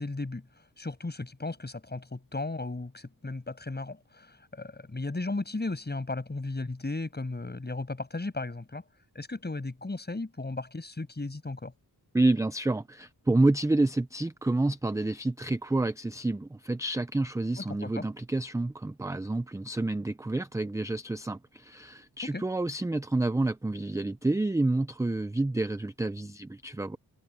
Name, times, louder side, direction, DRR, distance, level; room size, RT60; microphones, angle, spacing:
voice 1, 0.0-8.8 9.1-11.7 17.6-18.0 22.3-22.4, left 2 dB, 25° left, 6.2 m, -35 dB
voice 2, 12.1-27.0, right 2 dB, 10° right, 0.4 m, -28 dB
wide cardioid pair, 145°, 40 cm